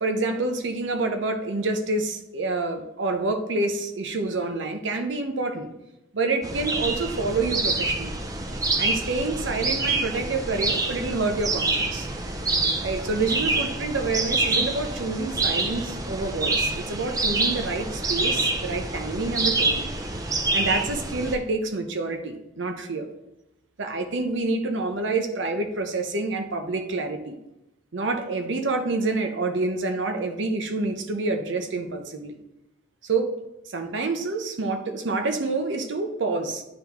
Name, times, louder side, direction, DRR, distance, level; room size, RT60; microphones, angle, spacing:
voice 1, 0.0-5.7 6.1-8.2 8.8-12.1 12.8-19.8 20.5-23.1 23.8-27.4 27.9-32.4 33.0-33.3 33.7-36.6, right 3 dB, 65° right, 6 dB, 0.7 m, -27 dB
sound 1, 6.4-21.4, right 2 dB, 15° right, 0.4 m, -26 dB
9.7 x 3.5 x 3.0 m, 0.93 s
head